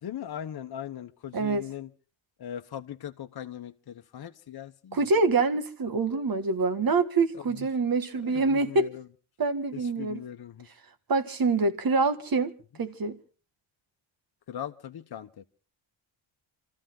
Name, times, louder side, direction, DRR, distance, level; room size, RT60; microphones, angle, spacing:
voice 1, 0.0-1.9 2.4-5.0 7.3-7.7 8.1-9.1 9.7-10.7 14.5-15.4, left 10 dB, 50° left, 1.1 m, -39 dB
voice 2, 4.9-8.9 9.4-10.2 11.1-12.5 12.8-13.2, right 3 dB, 45° right, 1.7 m, -25 dB
26.5 x 14.0 x 3.8 m
cardioid pair, 100°, 48 cm